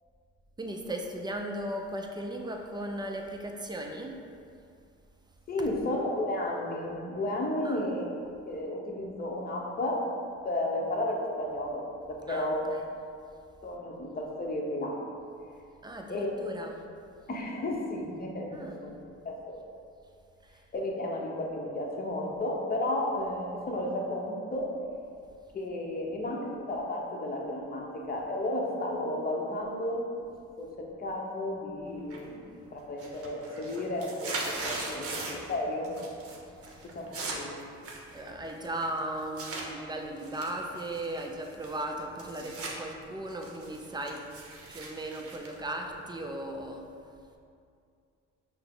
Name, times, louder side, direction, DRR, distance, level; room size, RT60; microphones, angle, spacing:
voice 1, 0.6-4.2 7.6-7.8 12.3-12.8 15.8-16.8 18.5-18.8 20.4-20.6 36.6-36.9 38.1-44.3 44.7-46.9, right 1 dB, 15° right, 2 dB, 0.4 m, -37 dB
voice 2, 5.5-8.1 8.5-10.0 10.4-12.6 13.6-15.0 16.1-16.4 17.3-19.0 19.2-19.6 20.7-24.7 25.5-30.0 30.6-35.9 36.9-37.6, left 1 dB, 30° left, -1 dB, 0.7 m, -33 dB
sound 1, 32.1-32.5 32.8-35.5 35.8-36.4 36.6-39.7 40.2-42.8 43.1-46.3, right 3 dB, 50° right, 0.8 m, -40 dB
5.5 x 2.0 x 3.7 m, 2.4 s
cardioid pair, 90°, 30 cm